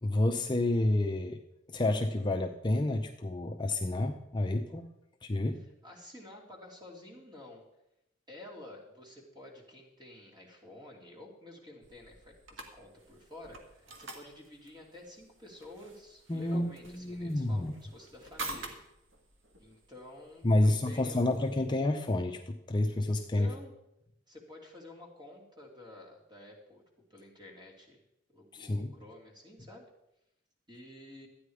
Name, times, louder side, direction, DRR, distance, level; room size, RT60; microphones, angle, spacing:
voice 1, 0.0-1.4 1.7-4.9 5.2-5.6 16.3-17.7 20.4-23.5 28.5-28.9, left 1 dB, 25° left, 3 dB, 0.6 m, -29 dB
voice 2, 5.8-7.6 8.3-18.8 19.6-21.2 23.3-23.7 24.3-26.8 27.1-28.0 28.3-29.9 30.7-31.3, left 1 dB, 25° right, -1 dB, 2.7 m, -50 dB
sound 1, 11.8-21.6, right 2 dB, 70° right, 1.6 m, -48 dB
13.0 x 9.3 x 4.9 m, 0.86 s
head